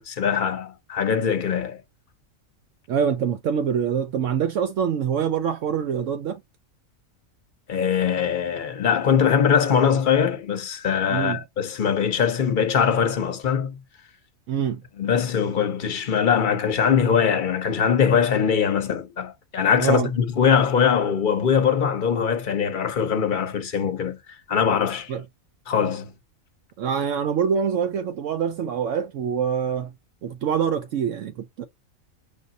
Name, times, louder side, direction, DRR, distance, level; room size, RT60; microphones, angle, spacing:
voice 1, 0.0-1.8 7.7-13.7 15.0-24.2 24.5-25.1 25.7-26.1, left 7 dB, 45° left, 0.8 m, -22 dB
voice 2, 2.9-6.4 11.1-11.4 14.5-14.8 19.8-20.1 25.1-25.2 26.8-29.9 30.2-31.6, right 7 dB, 70° right, 0.9 m, -25 dB
5.2 x 3.8 x 2.7 m
omnidirectional pair, 1.4 m